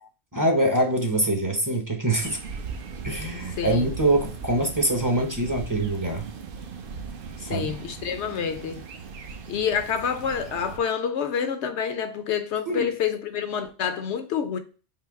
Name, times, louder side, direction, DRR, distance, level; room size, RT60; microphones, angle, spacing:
voice 1, 0.3-2.4 3.0-6.3 7.4-7.7 12.7-12.9, right 1 dB, 20° right, 0.6 m, -24 dB
sound 1, 2.2-10.8, right 5 dB, 60° right, 0.7 m, -38 dB
voice 2, 7.4-8.8 9.5-14.6, left 7 dB, 80° left, 0.9 m, -28 dB
3.8 x 2.7 x 4.5 m
omnidirectional pair, 1.1 m